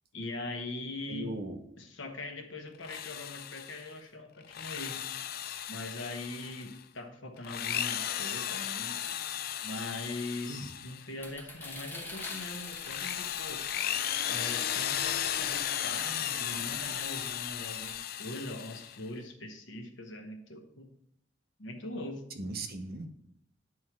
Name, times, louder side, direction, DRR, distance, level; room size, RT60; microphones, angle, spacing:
voice 1, 0.1-1.3 1.8-5.1 5.7-9.0 9.6-13.6 14.3-20.9 21.6-22.3, left 2 dB, 90° left, 5 dB, 1.1 m, -41 dB
voice 2, 1.1-1.6 10.5-10.7 22.3-23.1, right 2 dB, 55° right, 5 dB, 0.9 m, -38 dB
Drill, 2.7-3.9 4.4-6.8 7.4-11.1 11.6-19.0, left 10 dB, 55° left, 0.4 m, -35 dB
sound 1, 11.2-17.9, left 2 dB, 10° left, 1.0 m, -46 dB
9.5 x 3.2 x 5.8 m, 0.75 s
head